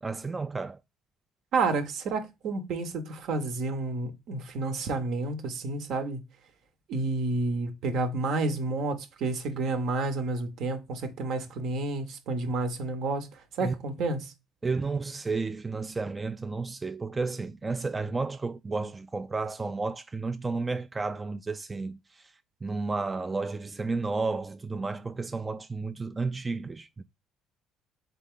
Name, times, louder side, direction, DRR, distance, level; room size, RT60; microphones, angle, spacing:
voice 1, 0.0-0.8 13.6-13.7 14.6-22.3 22.6-27.0, right 3 dB, 25° right, 0.3 m, -32 dB
voice 2, 1.5-6.2 6.9-13.3 13.6-14.3, right 3 dB, 65° right, 0.8 m, -30 dB
3.7 x 3.4 x 3.6 m
hypercardioid pair, 55°, 0 cm